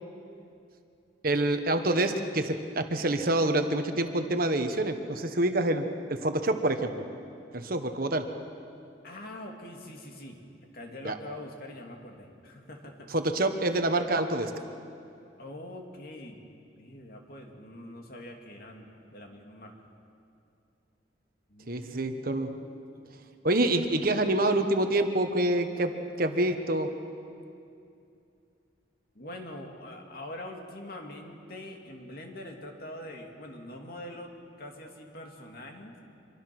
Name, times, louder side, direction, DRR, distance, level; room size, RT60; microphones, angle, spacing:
voice 1, 1.2-7.1 7.5-8.3 11.0-11.2 13.1-14.5 21.7-22.5 23.4-25.9 26.2-26.9, right 1 dB, 50° right, 7 dB, 1.3 m, -27 dB
voice 2, 9.0-10.4 10.7-13.1 15.4-16.4 16.8-19.7 21.5-22.9 23.6-23.7 29.1-34.3 34.6-36.0, left 1 dB, 55° left, 2 dB, 2.7 m, -44 dB
25.5 x 23.0 x 6.2 m, 2.5 s
head